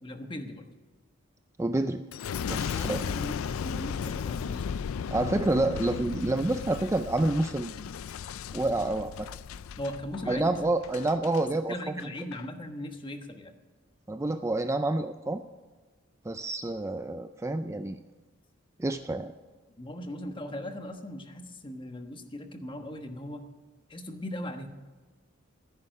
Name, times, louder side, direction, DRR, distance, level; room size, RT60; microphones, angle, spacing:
voice 1, 0.0-0.7 2.6-4.8 9.8-10.7 11.7-13.5 19.8-23.4 23.9-24.7, left 1 dB, 25° left, 6 dB, 1.2 m, -38 dB
voice 2, 1.6-2.0 2.5-3.0 5.1-7.8 8.5-9.3 10.3-11.9 14.1-15.4 16.3-18.0 18.8-19.3, right 2 dB, 15° right, 9 dB, 0.4 m, -28 dB
Boom, 2.1-11.5 12.0-12.5, left 7 dB, 85° left, 0.4 m, -36 dB
15.5 x 9.7 x 6.5 m, 1.3 s
head